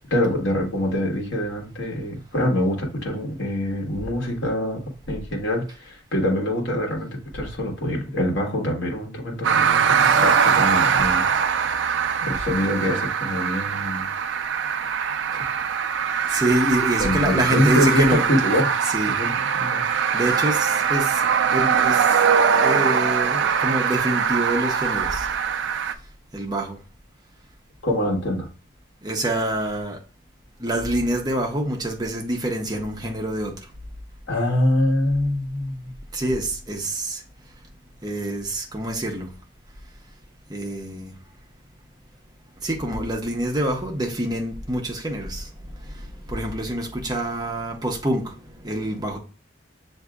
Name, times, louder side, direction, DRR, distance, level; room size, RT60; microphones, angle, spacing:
voice 1, 0.1-4.8 5.1-11.6 12.2-14.1 15.3-15.4 17.0-18.8 19.0-19.8 27.8-28.5 34.3-35.9, left 1 dB, 75° left, 1.3 m, -24 dB
sound 1, 9.4-25.9, right 7 dB, 80° right, 0.4 m, -22 dB
voice 2, 16.3-18.3 18.8-19.2 20.1-21.2 21.5-22.1 22.6-25.3 26.3-26.8 29.0-30.0 30.6-33.7 36.1-37.2 38.0-39.3 40.5-41.1 42.6-45.5 45.8-49.2, right 1 dB, 20° right, 0.8 m, -26 dB
7.1 x 2.7 x 2.3 m
head